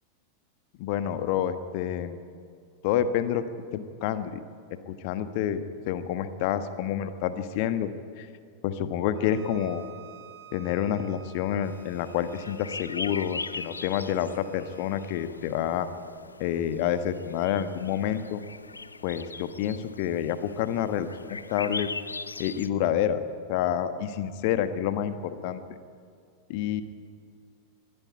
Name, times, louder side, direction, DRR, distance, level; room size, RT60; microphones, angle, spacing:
voice 1, 0.8-2.2 2.8-3.4 3.7-4.4 4.9-7.9 8.2-8.3 8.6-9.9 10.5-15.9 16.4-18.4 19.0-21.9 22.4-23.2 23.5-25.6 26.5-26.8, left 10 dB, 45° left, 11 dB, 1.3 m, -28 dB
Bowed string instrument, 9.1-15.2, right 8 dB, 50° right, 2.4 m, -52 dB
sound 1, 11.6-22.7, left 4 dB, 80° left, 0.6 m, -40 dB
21.0 x 13.0 x 9.8 m, 2.3 s
figure-of-eight pair, 90°, 0 cm